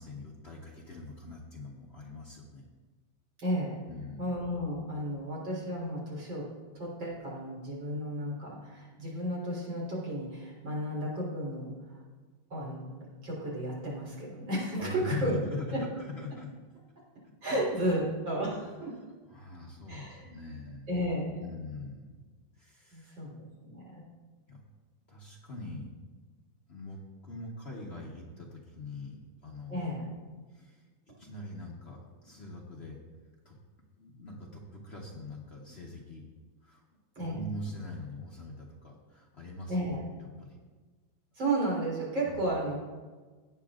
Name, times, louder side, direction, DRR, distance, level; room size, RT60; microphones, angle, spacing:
voice 1, 0.0-2.7 3.9-4.3 14.8-16.5 17.4-18.0 19.3-20.9 21.4-22.2 22.5-23.3 24.5-24.6 25.1-25.9 26.7-29.2 29.4-29.9 30.5-30.8 31.2-33.0 33.4-33.6 34.0-36.2 36.6-36.8 37.2-39.8 40.4-40.6 42.3-42.5, left 2 dB, 40° left, -2 dB, 1.2 m, -42 dB
voice 2, 3.4-3.8 4.2-6.4 6.7-11.7 12.5-15.3 15.7-15.8 17.4-18.9 19.9-20.3 20.9-21.5 22.9-23.3 23.7-24.1 29.7-30.1 37.2-37.4 39.7-40.1 41.4-42.8, right 1 dB, 75° right, -5 dB, 4.5 m, -33 dB
17.0 x 9.0 x 2.5 m, 1.4 s
omnidirectional pair, 2.1 m